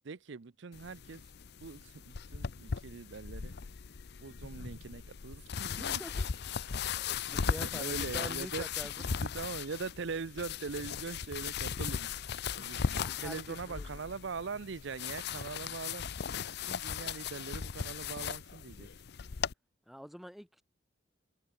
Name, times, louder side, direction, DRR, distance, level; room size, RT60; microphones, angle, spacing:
voice 1, 0.0-1.2 1.6-3.5 4.2-6.0 7.5-12.1 12.6-16.1 16.5-18.9, right 4 dB, 60° right, 0.6 m, -42 dB
sound 1, 0.7-19.5, left 6 dB, 55° left, 0.6 m, -38 dB
voice 2, 5.6-9.0 13.0-13.9 19.9-20.6, equal, ahead, 3.7 m, -47 dB
head